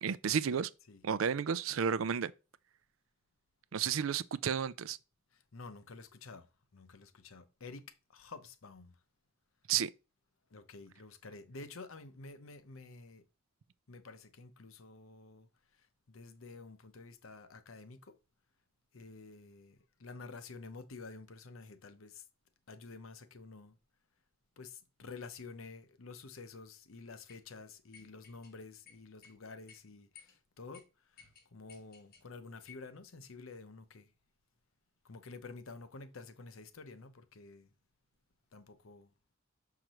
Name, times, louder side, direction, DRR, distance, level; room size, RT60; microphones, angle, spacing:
voice 1, 0.0-0.7 1.0-2.3 3.7-5.0 9.7-9.9, right 7 dB, 80° right, 0.5 m, -32 dB
voice 2, 5.3-9.0 10.5-13.3 13.9-15.5 15.8-18.2 18.9-22.2 22.7-23.8 24.6-30.8 31.1-31.2 31.5-34.1 35.0-37.7 38.5-39.1, left 3 dB, 85° left, 0.8 m, -50 dB
sound 1, 27.3-27.4 27.9-28.5 28.9-29.4 29.7-29.8 30.2-30.4 30.7-30.8 31.2-32.3 32.7-32.9, left 7 dB, 45° left, 1.7 m, -58 dB
6.4 x 5.9 x 3.0 m
head